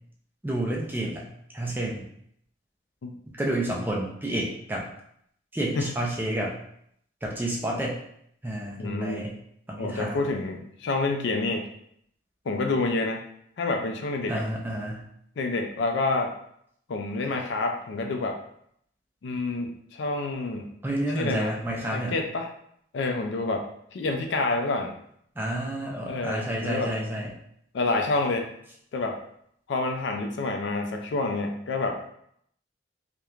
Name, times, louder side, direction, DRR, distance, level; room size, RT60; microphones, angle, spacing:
voice 1, 0.4-1.3 1.5-2.1 3.3-4.8 5.5-6.6 7.2-8.0 8.4-9.3 9.7-10.2 14.3-15.0 20.8-22.1 25.4-27.3, right 1 dB, 10° right, -2 dB, 0.3 m, -30 dB
voice 2, 8.8-9.3 9.8-11.7 12.5-13.2 13.6-14.4 15.4-16.3 16.9-18.4 19.2-20.7 21.1-21.5 21.9-22.5 22.9-25.0 26.1-26.9 27.7-28.5 28.9-29.2 29.7-32.0, left 3 dB, 65° left, 4 dB, 0.3 m, -28 dB
3.0 x 2.1 x 2.4 m, 0.70 s
head